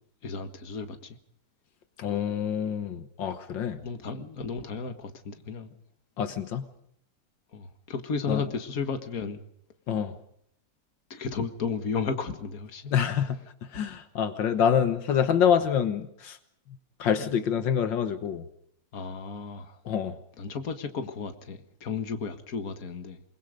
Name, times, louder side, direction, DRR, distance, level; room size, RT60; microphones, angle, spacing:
voice 1, 0.2-1.2 3.8-5.8 7.5-9.4 11.1-12.9 13.7-13.9 17.2-17.3 18.9-19.8 20.4-23.2, left 5 dB, 50° left, 8 dB, 2.0 m, -34 dB
voice 2, 2.0-3.8 6.2-6.7 8.3-8.4 9.9-10.2 12.9-13.4 13.7-16.4 17.0-18.5 19.9-20.2, left 8 dB, 80° left, 10 dB, 1.8 m, -26 dB
28.0 x 20.5 x 5.2 m, 0.73 s
omnidirectional pair, 2.0 m